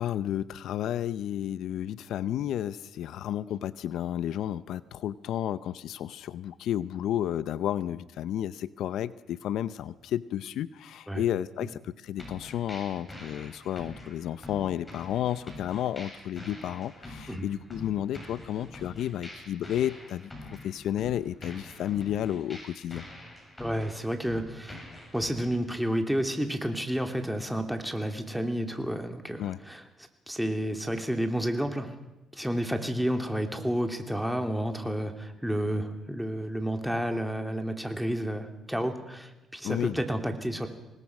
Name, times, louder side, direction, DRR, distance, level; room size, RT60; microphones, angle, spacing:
voice 1, 0.0-23.0 29.4-29.6 39.6-40.0, left 11 dB, 80° left, 16 dB, 0.6 m, -32 dB
sound 1, 12.2-25.6, left 1 dB, 20° left, 7.7 m, -45 dB
voice 2, 23.6-24.8 25.1-29.8 30.3-31.9 32.3-40.7, equal, ahead, 5 dB, 2.9 m, -30 dB
25.5 x 20.0 x 6.1 m, 0.99 s
cardioid pair, 90°, 0 cm